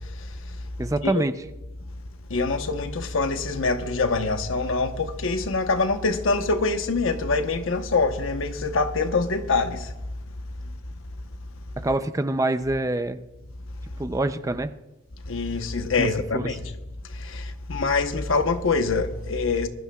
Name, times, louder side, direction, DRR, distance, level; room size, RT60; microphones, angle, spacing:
voice 1, 0.8-1.3 11.8-13.2 14.0-14.7 16.0-16.1 16.3-16.6, right 2 dB, 15° right, 0.4 m, -25 dB
voice 2, 2.3-9.8 15.3-16.6 17.2-17.4 17.7-19.7, left 3 dB, 75° left, 1.0 m, -24 dB
22.0 x 12.5 x 2.3 m
head